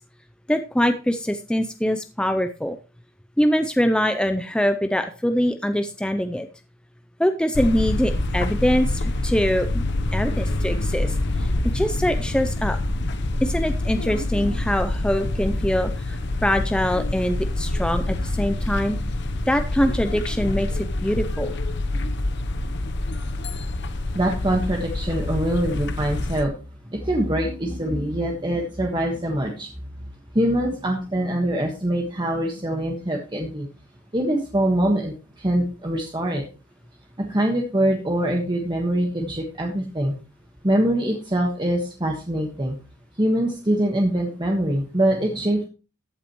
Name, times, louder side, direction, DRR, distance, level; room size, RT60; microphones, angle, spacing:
voice 1, 0.5-2.8 3.4-6.5 7.2-9.8 10.1-12.8 13.4-19.0 19.5-21.6, equal, 5° left, 8 dB, 0.5 m, -23 dB
sound 1, 7.5-26.4, left 2 dB, 60° left, 0.9 m, -26 dB
voice 2, 24.1-26.5 26.9-29.7 30.3-33.7 34.1-35.1 35.4-36.4 37.2-40.1 40.6-42.8 43.2-45.6, right 1 dB, 25° right, 1 dB, 1.5 m, -23 dB
14.5 x 8.6 x 3.1 m, 0.33 s
head